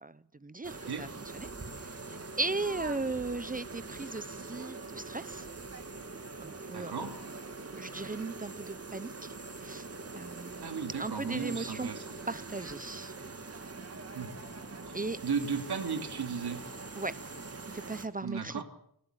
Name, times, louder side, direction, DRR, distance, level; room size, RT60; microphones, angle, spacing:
voice 1, 0.0-1.5 2.4-5.5 6.4-7.3 7.8-9.3 9.6-9.9 10.1-11.9 12.3-13.1 14.9-15.2 17.0-17.2 17.7-18.6, right 3 dB, 20° right, 16 dB, 0.7 m, -37 dB
sound 1, 0.6-18.1, right 3 dB, 40° right, 2.2 m, -43 dB
voice 2, 6.7-7.1 10.6-12.1 14.1-14.3 15.2-16.6 18.2-18.6, right 6 dB, 85° right, 6 dB, 2.6 m, -35 dB
26.0 x 12.0 x 9.0 m, 0.74 s
wide cardioid pair, 105°, 38 cm